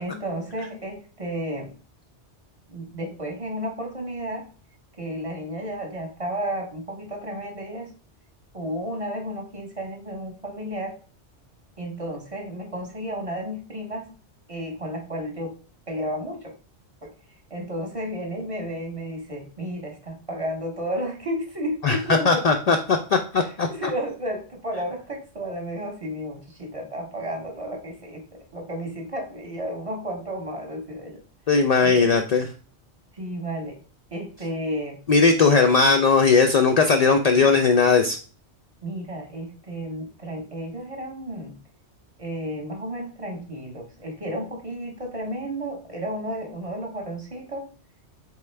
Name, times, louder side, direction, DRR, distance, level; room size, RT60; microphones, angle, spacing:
voice 1, 0.0-1.7 2.7-4.4 5.0-7.9 8.5-10.9 11.8-14.1 14.5-15.5 15.9-16.5 17.0-17.1 17.5-22.5 23.4-28.2 28.5-31.2 31.8-32.2 33.1-33.8 34.1-35.0 38.8-41.5 42.2-47.7, equal, 30° right, 1 dB, 0.9 m, -32 dB
voice 2, 21.8-23.7 31.5-32.5 35.1-38.2, left 4 dB, 70° left, 4 dB, 0.3 m, -18 dB
4.4 x 3.6 x 3.2 m, 0.39 s
omnidirectional pair, 1.2 m